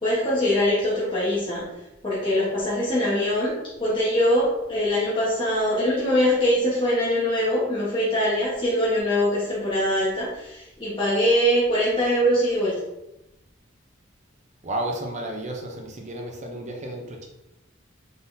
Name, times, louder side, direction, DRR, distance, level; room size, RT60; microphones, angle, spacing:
voice 1, 0.0-1.6 2.0-12.7, equal, 25° left, -9 dB, 1.1 m, -23 dB
voice 2, 14.6-17.3, right 1 dB, 35° right, 2 dB, 0.6 m, -32 dB
3.9 x 3.8 x 2.6 m, 0.88 s
head